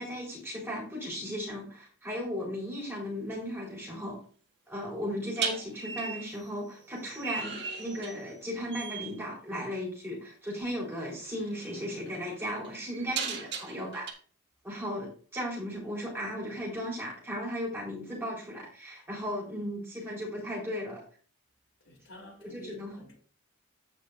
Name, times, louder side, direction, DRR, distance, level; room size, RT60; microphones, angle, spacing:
voice 1, 0.0-4.2 4.7-14.2 14.6-21.0 22.4-23.0, equal, 10° right, 4.2 m, -36 dB
sound 1, 2.8-3.0 5.4-8.4 8.7-9.1 10.6-10.8 11.3-14.1, right 5 dB, 55° right, 1.4 m, -38 dB
voice 2, 21.8-23.2, left 1 dB, 65° left, 3.5 m, -51 dB
14.5 x 5.3 x 2.6 m
head